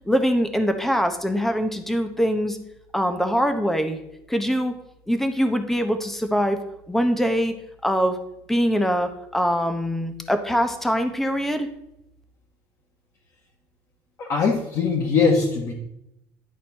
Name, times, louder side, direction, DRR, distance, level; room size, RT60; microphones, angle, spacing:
voice 1, 0.1-2.6 2.9-4.0 4.3-4.7 5.1-6.6 6.9-7.5 7.8-8.2 8.5-11.7, equal, 5° left, 8 dB, 0.9 m, -23 dB
voice 2, 14.2-15.7, left 4 dB, 45° left, 1 dB, 1.4 m, -21 dB
10.5 x 4.2 x 6.1 m, 0.82 s
cardioid pair, 150°, 7 cm